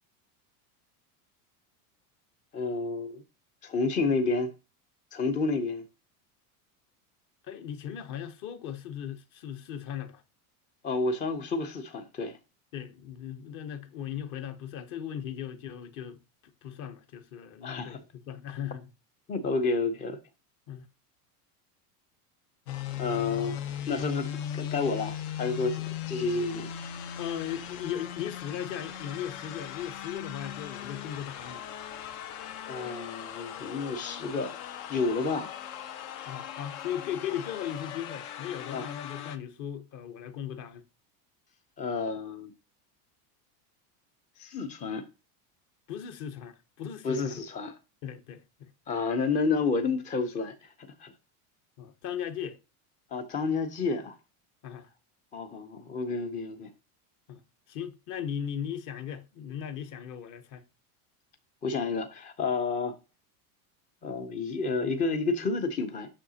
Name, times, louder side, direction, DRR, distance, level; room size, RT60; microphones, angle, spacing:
voice 1, 2.5-3.2 3.6-4.5 5.1-5.8 10.8-12.4 17.6-18.0 19.3-20.2 23.0-23.6 23.9-26.7 32.7-34.6 34.9-35.5 38.7-38.9 41.8-42.5 44.4-45.1 47.0-47.7 48.9-51.1 53.1-54.2 55.3-56.7 61.6-63.0 64.0-66.1, left 4 dB, 20° left, 0.4 m, -30 dB
voice 2, 7.5-10.2 12.7-16.2 16.6-18.0 18.3-18.9 20.7-20.9 27.2-31.6 36.3-40.8 45.9-47.3 48.0-48.7 51.8-52.6 54.6-54.9 57.3-57.4 57.7-60.6, left 9 dB, 45° left, 0.9 m, -37 dB
sound 1, 22.7-39.4, left 10 dB, 75° left, 1.0 m, -38 dB
7.6 x 6.3 x 2.8 m
supercardioid pair, 140°, 46 cm